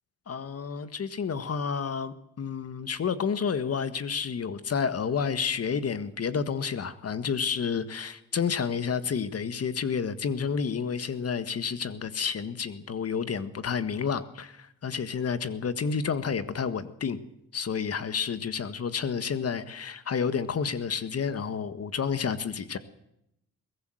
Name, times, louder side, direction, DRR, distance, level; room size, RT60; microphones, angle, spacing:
voice 1, 0.3-17.2 17.5-22.8, left 6 dB, 50° left, 12 dB, 1.7 m, -30 dB
22.5 x 16.0 x 7.8 m, 0.81 s
cardioid pair, 75°, 31 cm